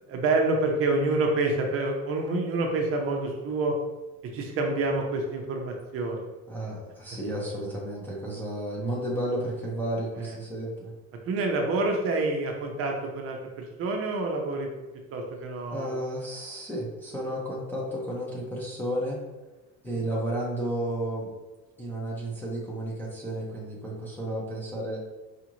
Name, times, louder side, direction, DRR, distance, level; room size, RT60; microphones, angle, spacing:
voice 1, 0.1-3.8 4.3-6.3 10.2-10.4 11.3-14.7 15.1-15.9 19.9-20.0, right 2 dB, 45° right, 2 dB, 0.6 m, -27 dB
voice 2, 6.5-10.9 15.7-19.2 19.8-21.3 21.8-25.0, right 1 dB, 5° left, -6 dB, 0.5 m, -32 dB
4.9 x 2.4 x 2.9 m, 1.1 s
cardioid pair, 175°, 32 cm